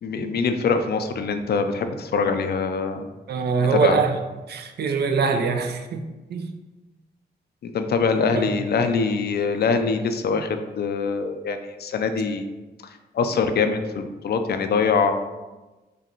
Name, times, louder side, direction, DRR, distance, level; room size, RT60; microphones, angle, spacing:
voice 1, 0.0-3.1 3.7-4.0 7.6-12.5 13.1-15.1, left 5 dB, 65° left, 7 dB, 0.4 m, -23 dB
voice 2, 3.3-4.2 4.5-6.5 8.4-8.5, right 5 dB, 70° right, 5 dB, 0.5 m, -23 dB
4.8 x 2.2 x 2.9 m, 1.2 s
cardioid pair, 60°, 18 cm